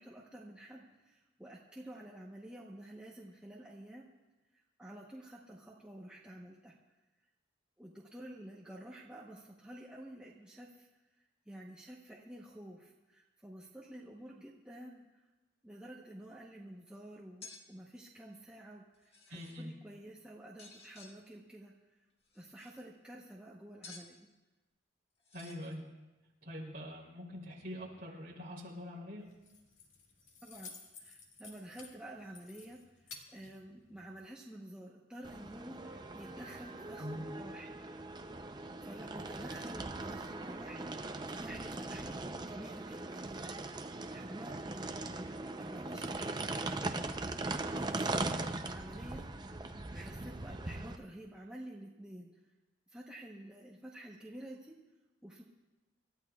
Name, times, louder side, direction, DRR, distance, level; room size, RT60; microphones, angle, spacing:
voice 1, 0.0-4.1 4.5-6.7 7.8-10.9 11.2-15.0 15.6-22.1 22.3-24.3 30.4-37.8 38.8-44.9 45.6-47.0 47.7-48.3 48.6-49.6 49.9-52.3 52.9-54.8 55.2-55.4, right 1 dB, 5° right, -4 dB, 0.9 m, -50 dB
sound 1, 17.4-17.6 18.9-19.6 20.6-21.1 22.2-22.8 23.8-24.1 25.2-25.8, left 4 dB, 30° left, 1.4 m, -53 dB
voice 2, 19.3-19.7 25.3-25.8 26.4-29.2 37.0-37.2 48.3-48.6, equal, 45° right, -3 dB, 3.3 m, -44 dB
Keys jangling, 29.2-34.3, left 4 dB, 75° left, 2.0 m, -54 dB
sound 2, 35.2-51.0, right 2 dB, 20° right, 0.5 m, -40 dB
27.0 x 13.0 x 2.4 m, 1.1 s
head